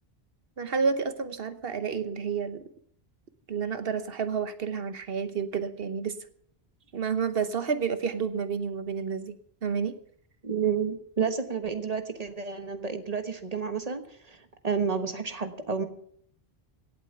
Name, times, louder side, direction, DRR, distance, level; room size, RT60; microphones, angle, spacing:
voice 1, 0.6-2.7 3.5-6.2 6.9-9.4 9.6-10.0, right 6 dB, 70° right, 11 dB, 1.2 m, -30 dB
voice 2, 10.4-15.9, right 6 dB, 40° right, 8 dB, 1.4 m, -30 dB
17.0 x 8.1 x 7.0 m, 0.65 s
omnidirectional pair, 1.0 m